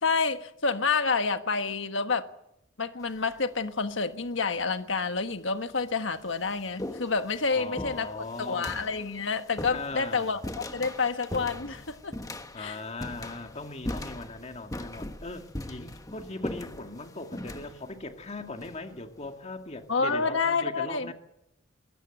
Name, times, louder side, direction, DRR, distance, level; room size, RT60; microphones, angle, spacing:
voice 1, 0.0-2.3 2.8-8.1 8.4-12.1 12.6-12.8 19.9-21.1, left 4 dB, 70° left, 1.5 m, -28 dB
sound 1, 3.0-3.4 4.4-4.5 5.3-5.4 5.8-19.3, left 1 dB, 20° left, 1.2 m, -40 dB
voice 2, 7.5-8.7 9.7-10.4 12.5-21.1, left 2 dB, 35° left, 2.1 m, -39 dB
22.5 x 17.5 x 8.0 m
head